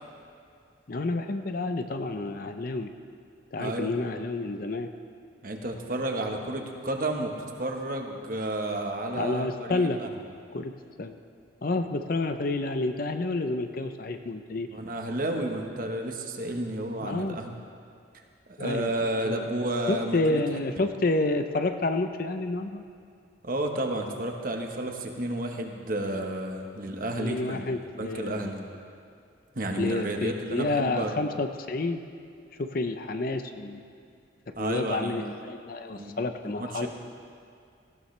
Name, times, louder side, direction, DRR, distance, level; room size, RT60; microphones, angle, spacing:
voice 1, 0.9-2.9 3.5-4.9 9.1-10.0 10.5-10.7 11.0-11.2 11.6-14.7 17.0-17.4 18.6-18.9 19.2-19.4 19.9-22.8 27.2-28.5 29.8-32.0 32.6-33.8 34.6-36.9, left 2 dB, 45° left, 7 dB, 0.6 m, -29 dB
voice 2, 3.6-3.9 5.4-7.3 7.6-10.1 14.7-17.5 18.5-20.4 23.4-27.6 28.0-28.6 29.5-31.1 34.5-35.2 35.9-36.2 36.4-36.9, right 1 dB, 45° right, 3 dB, 1.2 m, -31 dB
18.0 x 15.5 x 3.3 m, 2.4 s
head